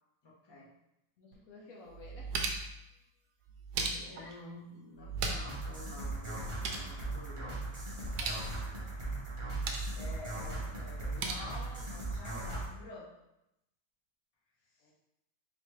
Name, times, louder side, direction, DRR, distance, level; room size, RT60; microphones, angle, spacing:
voice 1, 0.2-0.7 3.8-7.8 9.4-13.1 14.7-14.9, left 2 dB, 30° left, -5 dB, 0.5 m, -49 dB
voice 2, 1.2-2.4 4.1-4.3 7.4-7.6 8.2-8.5 14.8-14.9, left 2 dB, 60° left, -2 dB, 1.1 m, -53 dB
sound 1, 1.3-1.4 1.9-2.8 3.5-4.3 5.0-5.6 5.9-6.0 6.3-6.9 8.0-8.4 9.3-10.0 10.9-11.3, right 4 dB, 70° right, 1.0 m, -37 dB
sound 2, 5.4-12.7, right 2 dB, 30° right, 0.5 m, -39 dB
4.1 x 3.0 x 3.0 m, 0.86 s
omnidirectional pair, 1.9 m